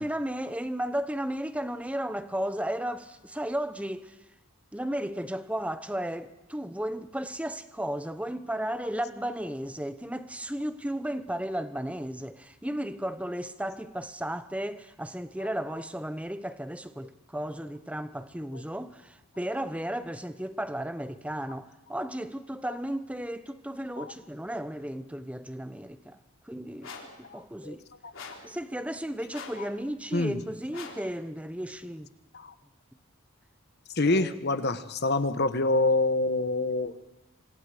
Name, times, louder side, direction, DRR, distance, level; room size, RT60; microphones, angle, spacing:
voice 1, 0.0-4.2 4.7-26.2 26.4-26.9 27.2-27.8 28.4-32.1 34.0-34.4, right 1 dB, 5° right, 0.8 m, -34 dB
sound 1, 26.8-27.2 28.1-28.5 29.3-29.7 30.7-31.1, left 4 dB, 65° left, 3.7 m, -43 dB
voice 2, 27.3-27.8 28.0-28.1 30.1-30.4 32.3-32.5 33.9-37.0, left 2 dB, 50° left, 1.1 m, -26 dB
27.5 x 25.5 x 5.0 m
head